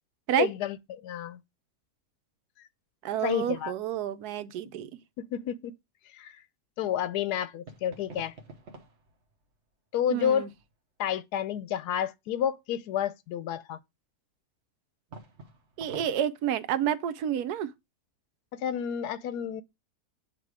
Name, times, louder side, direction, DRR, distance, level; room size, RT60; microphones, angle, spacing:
voice 1, 0.4-1.4 3.2-3.7 5.2-5.7 6.1-6.4 6.8-8.3 9.9-10.5 11.0-13.8 18.5-19.6, left 9 dB, 85° left, 1.1 m, -30 dB
voice 2, 3.0-5.0 10.1-10.5 15.8-17.7, right 10 dB, 80° right, 1.2 m, -29 dB
sound 1, 7.6-9.6 10.0-10.7 15.1-16.2, right 3 dB, 50° right, 1.2 m, -48 dB
7.6 x 2.7 x 4.7 m
omnidirectional pair, 1.6 m